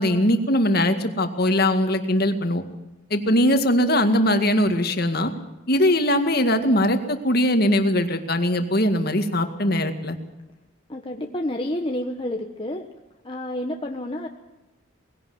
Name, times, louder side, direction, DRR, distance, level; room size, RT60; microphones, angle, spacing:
voice 1, 0.0-2.6 3.1-5.3 5.7-10.2, left 1 dB, 50° left, 7 dB, 2.0 m, -21 dB
voice 2, 10.9-12.9 13.2-14.3, left 1 dB, 25° left, 2 dB, 1.2 m, -29 dB
20.5 x 17.0 x 7.9 m, 1.0 s
head